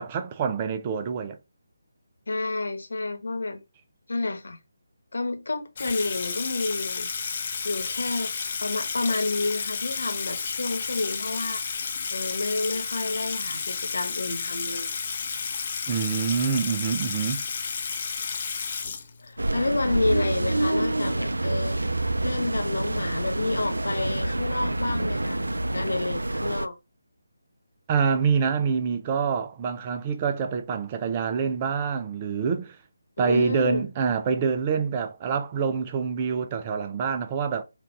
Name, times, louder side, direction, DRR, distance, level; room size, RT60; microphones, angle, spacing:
voice 1, 0.0-1.4 15.9-17.4 27.9-32.8 33.2-37.6, right 6 dB, 25° right, 0.6 m, -26 dB
voice 2, 2.3-3.6 4.1-4.6 5.1-11.8 12.1-14.9 19.2-21.8 22.2-26.8 33.2-33.9, left 2 dB, 65° left, 1.2 m, -30 dB
Water tap faucet / Sink (filling or washing), 5.8-19.5, left 5 dB, 40° left, 0.7 m, -31 dB
sound 1, 19.4-26.7, right 2 dB, 80° right, 0.3 m, -27 dB
4.5 x 2.5 x 4.6 m
figure-of-eight pair, 155°, 0 cm